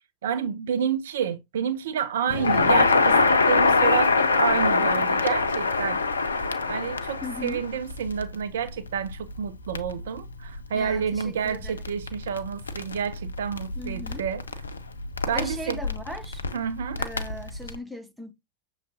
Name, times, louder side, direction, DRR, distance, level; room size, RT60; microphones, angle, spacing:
voice 1, 0.2-6.0 6.7-14.4 15.3-15.8 16.5-17.0, right 8 dB, 60° right, 0.4 m, -29 dB
voice 2, 2.2-2.9 7.2-7.6 10.7-11.7 13.8-14.3 15.3-16.4 17.0-18.3, left 1 dB, 5° right, 0.8 m, -38 dB
Crackle, 2.3-17.8, left 4 dB, 75° left, 0.5 m, -25 dB
6.3 x 3.1 x 2.5 m
figure-of-eight pair, 90°, 0 cm